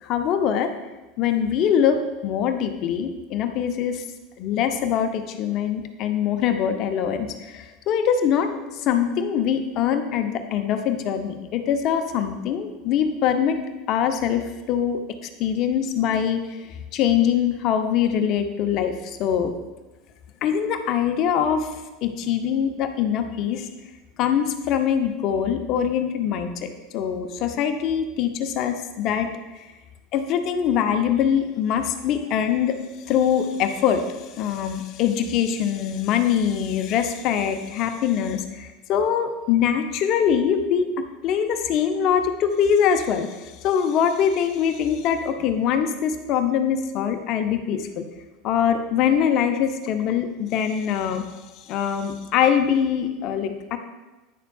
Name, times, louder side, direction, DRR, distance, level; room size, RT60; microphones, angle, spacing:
voice 1, 0.0-0.7 1.2-4.0 4.4-8.5 8.7-13.6 13.9-15.0 15.4-16.4 16.9-19.5 20.4-21.7 22.0-23.7 24.2-29.3 29.5-29.7 30.1-32.8 33.1-34.0 34.4-48.0 48.4-51.3 51.7-53.8, left 8 dB, 45° left, 7 dB, 0.7 m, -23 dB
9.2 x 6.6 x 2.3 m, 1.1 s
figure-of-eight pair, 80°, 0 cm